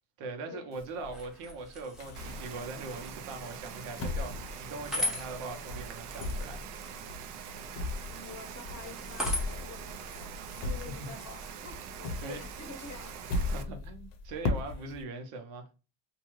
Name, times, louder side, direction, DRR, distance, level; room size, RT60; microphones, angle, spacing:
voice 1, 0.2-6.6 10.9-11.1 12.2-12.4 13.3-15.7, right 3 dB, 85° right, 1.0 m, -41 dB
sound 1, 0.7-2.9 3.3-5.4 5.7-11.4 11.6-15.0, left 3 dB, 70° left, 0.8 m, -37 dB
sound 2, 1.0-13.4, left 1 dB, ahead, 0.7 m, -42 dB
Rain, 2.2-13.6, right 7 dB, 65° right, 0.6 m, -44 dB
voice 2, 8.1-13.3, left 4 dB, 35° left, 0.7 m, -48 dB
2.7 x 2.3 x 3.0 m
cardioid pair, 145°, 46 cm